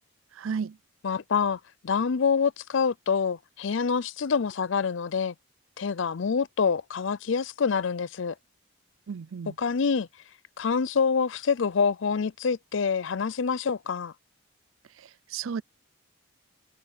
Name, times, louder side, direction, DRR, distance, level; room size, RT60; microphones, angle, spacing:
voice 1, 0.4-0.8 9.1-9.5 15.3-15.6, right 6 dB, 75° right, 0.4 m, -32 dB
voice 2, 1.0-5.3 5.8-8.3 9.6-10.1 10.6-14.1, left 5 dB, 65° left, 0.5 m, -26 dB
head